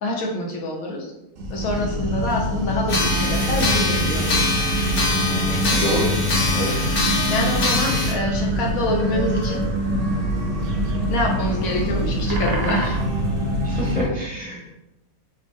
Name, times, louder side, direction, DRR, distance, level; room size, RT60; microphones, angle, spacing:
voice 1, 0.0-1.1 1.5-4.4 7.3-9.6 11.1-13.0, left 2 dB, 75° left, -1 dB, 1.3 m, -26 dB
sound 1, 1.4-14.1, equal, 55° right, 0.7 m, -24 dB
sound 2, 2.9-8.1, left 2 dB, 45° left, 0.9 m, -23 dB
sound 3, 4.4-14.0, right 2 dB, 80° right, 1.1 m, -39 dB
voice 2, 5.4-6.2 6.5-6.9 13.6-14.7, equal, 5° left, -4 dB, 0.8 m, -28 dB
3.5 x 3.0 x 3.4 m, 0.93 s
omnidirectional pair, 1.5 m